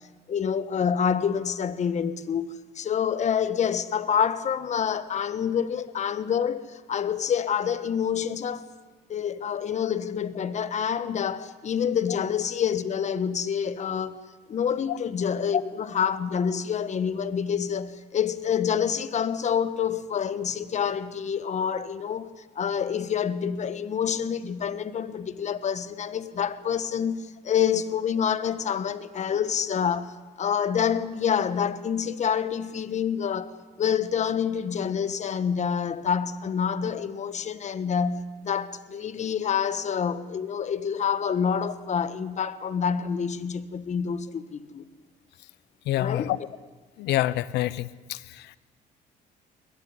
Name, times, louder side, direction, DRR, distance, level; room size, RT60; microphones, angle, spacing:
voice 1, 0.3-8.7 9.1-14.2 14.5-22.3 22.5-44.8 45.9-46.3, left 7 dB, 45° left, 1.5 m, -27 dB
voice 2, 45.9-46.4 47.0-48.6, left 14 dB, 80° left, 0.9 m, -27 dB
22.0 x 20.5 x 9.9 m
cardioid pair, 110°, 17 cm